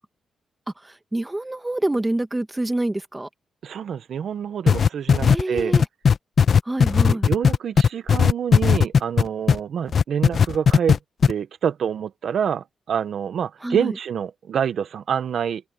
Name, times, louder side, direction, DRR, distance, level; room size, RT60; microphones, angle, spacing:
voice 1, 0.8-3.3 5.2-5.8 6.6-7.3 13.6-13.9, right 1 dB, 10° right, 1.3 m, -26 dB
voice 2, 3.6-5.7 7.0-11.0 11.3-15.6, right 8 dB, 60° right, 1.0 m, -27 dB
sound 1, 4.7-9.6 9.9-11.0 11.2-11.3, left 6 dB, 45° left, 0.8 m, -16 dB
open air
cardioid pair, 125°, 0 cm